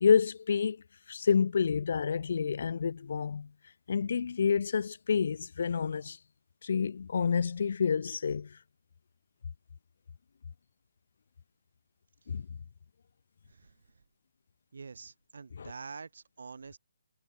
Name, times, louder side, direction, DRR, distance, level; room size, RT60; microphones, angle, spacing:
voice 1, 0.0-3.5 3.9-6.2 6.6-8.6 12.3-12.5 15.6-15.7, left 6 dB, 55° left, 0.4 m, -28 dB
voice 2, 14.7-16.8, right 5 dB, 70° right, 0.9 m, -46 dB
hypercardioid pair, 160°, 0 cm